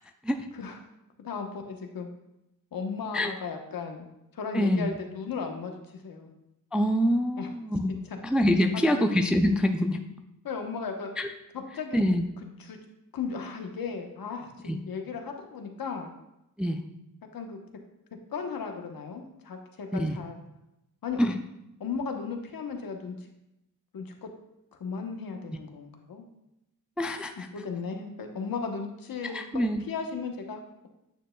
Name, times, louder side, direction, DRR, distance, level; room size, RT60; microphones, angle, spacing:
voice 1, 1.2-2.1 2.7-4.1 4.3-6.4 7.4-7.5 8.7-9.1 10.4-11.1 11.5-12.0 12.6-12.8 13.1-16.1 17.3-17.6 18.3-20.3 21.0-21.2 21.8-23.1 23.9-24.3 24.8-26.3 27.4-30.9, left 5 dB, 70° left, 4 dB, 1.0 m, -36 dB
voice 2, 4.5-5.0 6.7-7.9 8.2-10.0 11.2-11.3 11.9-12.2 14.7-14.8 16.6-16.8 19.9-20.2 21.2-21.3 27.0-27.5 29.3-29.8, equal, 5° right, 6 dB, 0.3 m, -25 dB
9.2 x 6.5 x 2.2 m, 0.88 s
wide cardioid pair, 130°, 37 cm